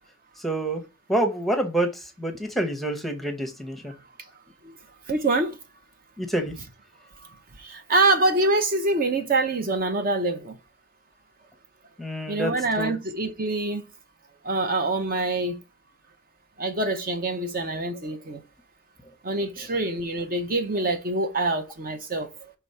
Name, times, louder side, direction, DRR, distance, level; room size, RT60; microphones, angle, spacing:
voice 1, 0.4-0.8 1.1-3.9 6.2-6.6 12.0-12.9, right 1 dB, ahead, 0.9 m, -27 dB
voice 2, 5.1-5.6 7.2-10.6 12.3-13.9 14.4-15.6 16.6-18.4 19.2-22.5, right 2 dB, 45° right, 0.7 m, -25 dB
6.0 x 3.4 x 5.4 m
head